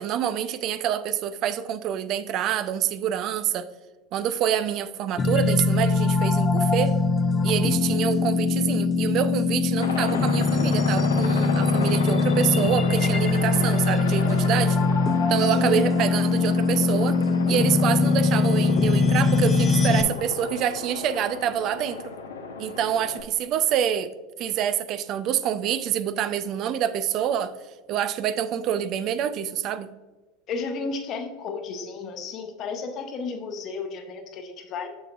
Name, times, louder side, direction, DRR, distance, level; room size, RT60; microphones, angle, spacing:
voice 1, 0.0-3.7 4.1-7.0 7.4-14.8 15.3-17.2 17.5-22.1 22.6-24.1 24.4-27.6 27.9-29.9, right 9 dB, 50° right, 12 dB, 0.4 m, -26 dB
sound 1, 5.2-20.0, left 4 dB, 30° left, 0.6 m, -22 dB
Aircraft, 9.8-23.2, left 4 dB, 80° left, 0.8 m, -34 dB
voice 2, 15.5-15.9 30.5-34.9, left 5 dB, 45° left, 5 dB, 1.2 m, -32 dB
7.1 x 6.8 x 2.4 m, 1.3 s
hypercardioid pair, 80°, 0 cm